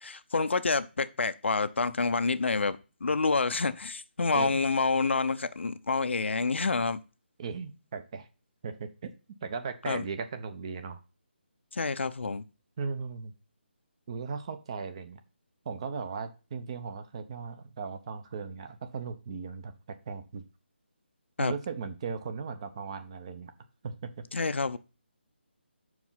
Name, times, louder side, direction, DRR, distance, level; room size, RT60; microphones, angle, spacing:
voice 1, 0.0-7.0 9.9-10.0 11.7-12.4 21.4-21.5 24.3-24.8, left 4 dB, 80° left, 0.6 m, -28 dB
voice 2, 7.4-8.3 8.6-9.1 9.4-11.0 12.8-13.3 14.1-15.2 15.7-20.4 21.4-23.5 23.8-24.2, right 5 dB, 30° right, 0.7 m, -37 dB
5.9 x 4.8 x 5.6 m
hypercardioid pair, 165°, 6 cm